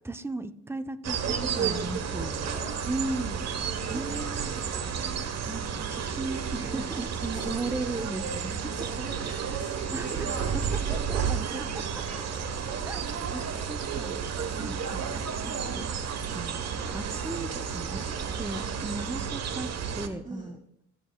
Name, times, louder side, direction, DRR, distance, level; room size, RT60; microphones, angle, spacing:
voice 1, 0.0-2.3 2.9-3.5 3.9-4.6 5.4-8.7 9.9-10.6 10.9-11.8 12.8-13.0 13.3-13.4 13.7-14.1 14.5-15.9 16.3-16.6 16.9-18.0 18.4-20.6, right 2 dB, 10° right, 9 dB, 0.7 m, -36 dB
sound 1, 1.0-20.1, right 7 dB, 60° right, 1.2 m, -32 dB
voice 2, 1.6-2.7 3.1-3.4 3.7-4.9 6.7-6.8 7.1-7.8 8.2-11.1 12.0-14.3 14.9-15.3 16.2-16.8 17.9-18.3 20.2-20.5, right 1 dB, 25° right, -3 dB, 3.0 m, -46 dB
26.0 x 9.3 x 2.3 m, 0.74 s
cardioid pair, 90°, 30 cm